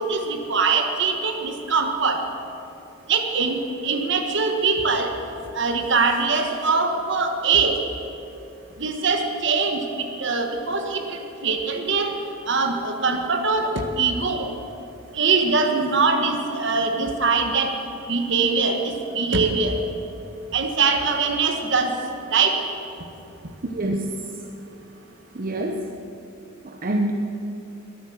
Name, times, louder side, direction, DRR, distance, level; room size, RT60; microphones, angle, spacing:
voice 1, 0.0-2.2 3.1-3.6 3.8-5.1 5.5-7.8 8.8-9.8 10.2-11.0 11.4-12.1 12.5-13.7 14.0-14.5 15.2-17.7 18.1-18.8 19.1-19.8 20.5-21.9 22.3-22.5, right 4 dB, 55° right, 5 dB, 1.5 m, -22 dB
voice 2, 23.7-24.2 25.3-25.9 26.6-27.1, right 1 dB, 40° right, 2 dB, 0.7 m, -26 dB
21.5 x 8.7 x 6.6 m, 2.9 s
head